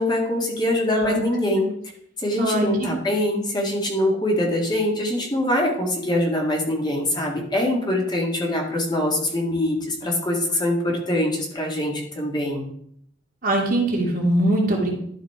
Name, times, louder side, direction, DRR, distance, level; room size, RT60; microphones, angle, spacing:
voice 1, 0.0-1.7 2.2-12.7, left 1 dB, 25° left, -1 dB, 1.7 m, -23 dB
voice 2, 2.4-2.9 13.4-15.0, right 1 dB, 50° right, -1 dB, 2.1 m, -21 dB
11.5 x 4.1 x 4.5 m, 0.69 s
head